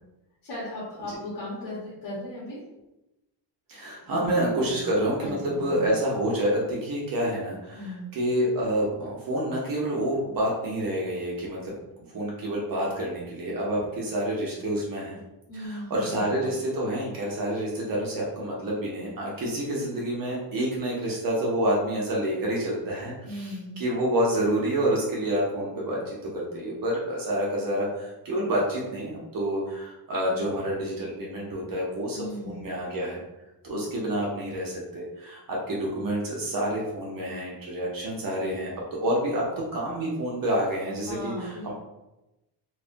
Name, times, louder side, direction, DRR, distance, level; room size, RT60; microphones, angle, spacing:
voice 1, 0.4-2.6 4.0-4.3 5.2-5.9 7.7-8.1 15.5-16.6 23.2-23.8 32.1-32.7 41.0-41.7, left 1 dB, 55° left, -7 dB, 1.1 m, -37 dB
voice 2, 3.7-11.8 12.1-15.2 15.5-32.2 32.4-33.2 33.6-39.5 39.7-41.7, right 1 dB, 50° right, -4 dB, 0.8 m, -28 dB
3.2 x 2.2 x 2.5 m, 0.96 s
cardioid pair, 140°, 43 cm